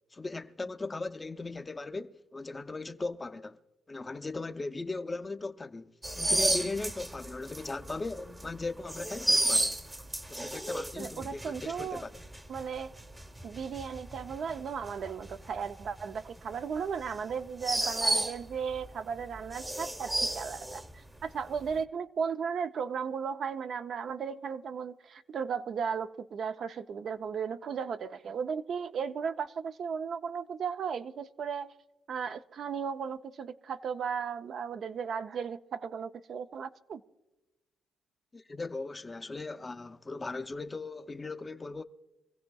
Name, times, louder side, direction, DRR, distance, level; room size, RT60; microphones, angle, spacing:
voice 1, 0.1-3.6 3.9-9.8 10.3-12.2 38.3-41.8, left 3 dB, 25° left, 0.6 m, -38 dB
sound 1, 6.0-18.9 19.2-21.3 21.6-21.8, right 1 dB, 15° right, 0.9 m, -33 dB
voice 2, 11.0-12.0 12.5-12.9 13.4-31.7 32.1-37.0, right 6 dB, 60° right, 0.5 m, -35 dB
25.0 x 15.5 x 2.3 m
cardioid pair, 90°, 0 cm